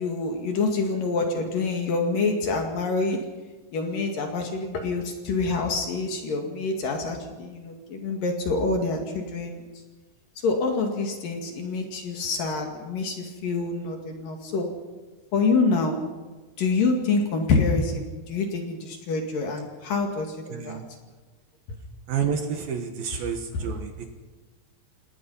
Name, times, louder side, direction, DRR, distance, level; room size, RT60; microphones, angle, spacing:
voice 1, 0.0-3.2 3.7-9.6 10.4-14.7 15.3-16.1 16.6-20.8 23.1-23.2, left 3 dB, 55° left, 3 dB, 3.5 m, -26 dB
voice 2, 20.5-20.9 22.1-24.1, right 7 dB, 65° right, 5 dB, 2.9 m, -30 dB
28.0 x 19.0 x 5.7 m, 1.3 s
omnidirectional pair, 5.2 m